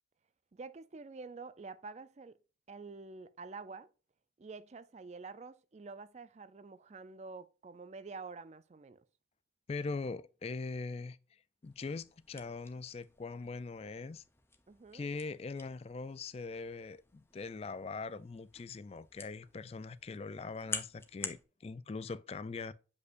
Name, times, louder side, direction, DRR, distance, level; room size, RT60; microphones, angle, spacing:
voice 1, 0.5-2.4 2.7-3.9 4.4-9.0 14.7-15.1, right 4 dB, 40° right, 0.4 m, -48 dB
voice 2, 9.7-11.2 11.6-14.2 14.9-22.7, left 4 dB, 35° left, 0.3 m, -41 dB
sound 1, 11.6-21.4, left 4 dB, 15° left, 0.7 m, -49 dB
8.2 x 5.3 x 2.5 m
head